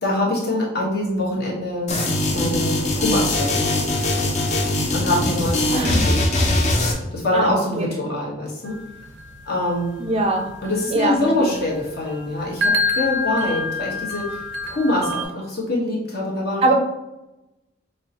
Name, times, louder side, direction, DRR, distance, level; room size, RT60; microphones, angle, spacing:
voice 1, 0.0-2.0 2.3-3.8 4.9-6.5 7.1-8.8 9.4-10.1 10.6-16.7, left 1 dB, 60° left, -3 dB, 1.1 m, -24 dB
sound 1, 1.9-6.9, left 1 dB, 40° left, 0.6 m, -21 dB
voice 2, 5.7-6.1 7.3-8.0 10.0-10.5 10.9-11.5 16.6-16.7, right 2 dB, 35° right, 4 dB, 0.4 m, -22 dB
sound 2, 8.7-15.2, left 2 dB, 90° right, 0.5 m, -28 dB
5.3 x 2.2 x 2.9 m, 0.97 s
head